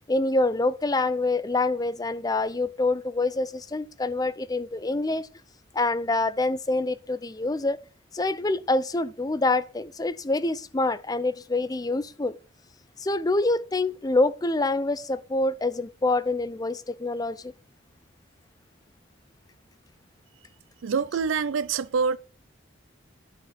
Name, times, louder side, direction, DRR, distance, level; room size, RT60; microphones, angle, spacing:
voice 1, 0.1-5.3 5.7-7.8 8.1-12.4 13.0-17.5, left 2 dB, 20° left, 0.5 m, -26 dB
voice 2, 20.8-22.2, right 5 dB, 90° right, 0.4 m, -25 dB
10.5 x 4.6 x 5.8 m
head